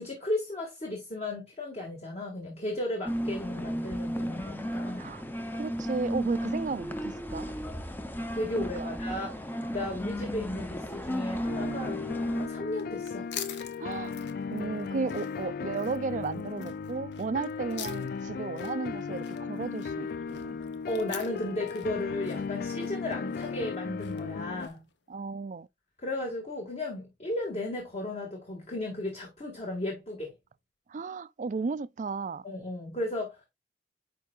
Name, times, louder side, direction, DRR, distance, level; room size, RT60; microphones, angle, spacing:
voice 1, 0.0-5.1 8.3-12.0 12.3-13.3 20.9-24.8 26.0-30.3 32.4-33.5, left 1 dB, 35° left, 2.0 m, -35 dB
sound 1, 3.1-12.5, equal, 10° left, 0.6 m, -34 dB
voice 2, 5.5-7.5 8.6-8.9 13.8-14.1 14.5-20.6 25.1-25.7 30.9-32.4, right 4 dB, 45° right, 0.4 m, -34 dB
sound 2, 11.5-24.7, left 5 dB, 55° left, 0.3 m, -36 dB
sound 3, 12.7-24.9, left 9 dB, 75° left, 0.9 m, -46 dB
10.0 x 4.6 x 2.4 m
head